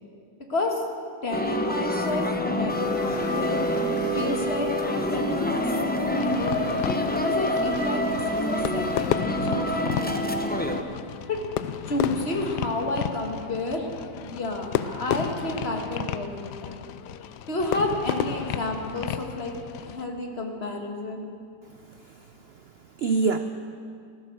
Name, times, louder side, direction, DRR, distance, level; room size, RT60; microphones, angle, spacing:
voice 1, 0.3-0.8 1.2-3.6 4.1-6.9 7.2-10.8 11.3-11.4 11.9-13.9 14.1-16.8 17.5-21.3, left 2 dB, 40° left, 2 dB, 1.8 m, -31 dB
sound 1, 1.3-10.8, left 1 dB, 10° left, 0.4 m, -26 dB
sound 2, 2.7-9.1, left 4 dB, 65° left, 1.6 m, -43 dB
Fireworks, 6.1-20.1, left 10 dB, 85° left, 1.2 m, -33 dB
voice 2, 21.6-23.4, right 4 dB, 70° right, 8 dB, 0.5 m, -29 dB
16.0 x 14.0 x 6.5 m, 2.3 s
omnidirectional pair, 1.8 m